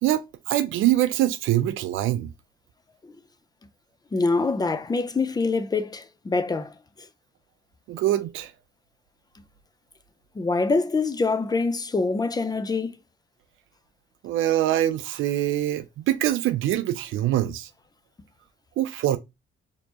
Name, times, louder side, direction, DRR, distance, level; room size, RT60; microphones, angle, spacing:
voice 1, 0.0-2.3 7.9-8.5 14.2-17.7 18.8-19.2, right 13 dB, 85° right, 0.5 m, -24 dB
voice 2, 4.1-6.7 10.4-13.0, left 3 dB, 20° left, 0.5 m, -25 dB
4.3 x 2.9 x 2.9 m
cardioid pair, 90°, 20 cm